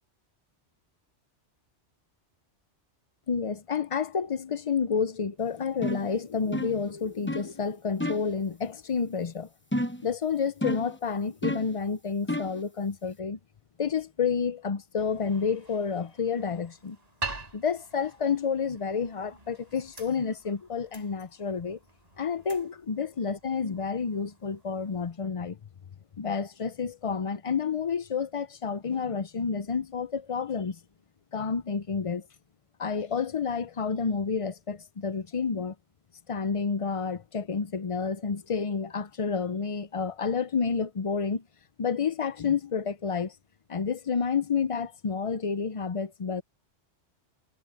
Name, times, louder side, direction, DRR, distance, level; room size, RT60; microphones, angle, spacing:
voice 1, 3.3-9.5 10.0-13.4 13.8-17.0 17.5-21.8 22.2-25.6 26.2-30.8 31.3-32.3 32.8-35.7 36.3-41.4 41.8-43.3 43.7-46.4, left 5 dB, 40° left, 0.6 m, -30 dB
sound 1, 5.8-6.1 6.5-6.8 7.3-7.5 8.0-8.3 9.7-10.1 10.6-11.0 11.4-11.8 12.3-12.6, left 1 dB, 10° left, 1.0 m, -30 dB
sound 2, 15.0-25.1, right 3 dB, 35° right, 6.0 m, -45 dB
omnidirectional pair, 1.2 m